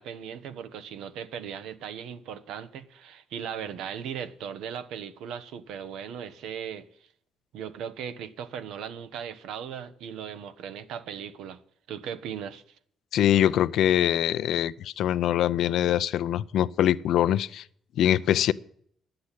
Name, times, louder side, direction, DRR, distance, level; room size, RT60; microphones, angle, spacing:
voice 1, 0.0-6.9 7.5-11.6 11.9-12.6, right 8 dB, 85° right, 1.0 m, -38 dB
voice 2, 13.1-17.6 18.0-18.5, left 11 dB, 80° left, 0.6 m, -23 dB
10.5 x 7.9 x 9.9 m
cardioid pair, 90°, 0 cm